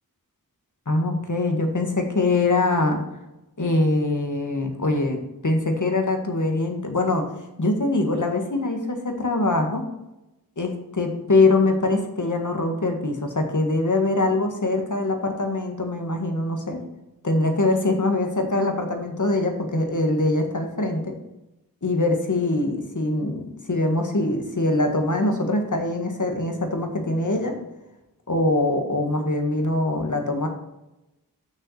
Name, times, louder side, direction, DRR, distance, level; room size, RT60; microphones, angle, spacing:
voice 1, 0.9-3.0 3.6-7.3 7.6-9.9 10.6-16.8 17.2-21.1 21.8-27.6 28.3-30.5, left 2 dB, 55° left, 4 dB, 1.8 m, -23 dB
6.6 x 6.2 x 6.4 m, 0.95 s
wide cardioid pair, 45°, 35 cm